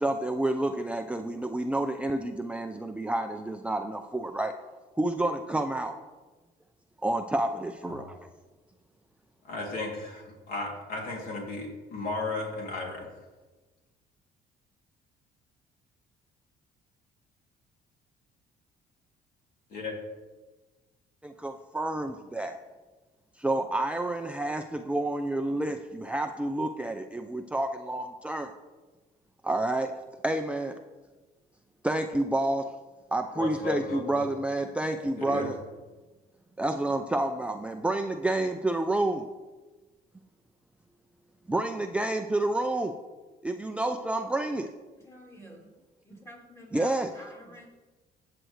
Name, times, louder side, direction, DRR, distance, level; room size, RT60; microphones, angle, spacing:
voice 1, 0.0-4.5 5.0-6.0 7.0-8.2 21.2-22.6 23.4-28.5 29.4-30.0 30.2-30.8 31.8-32.7 33.1-35.5 36.6-39.3 41.5-43.0 43.4-44.7 45.4-45.5 46.7-47.1, right 2 dB, 5° right, 5 dB, 0.5 m, -29 dB
voice 2, 9.4-13.1 19.7-20.0 33.3-34.3 35.2-35.5, left 3 dB, 60° left, -1 dB, 2.8 m, -35 dB
voice 3, 45.0-45.7 46.0-47.7, equal, 15° left, -3 dB, 3.0 m, -49 dB
14.0 x 7.7 x 3.2 m, 1.2 s
cardioid pair, 110°, 17 cm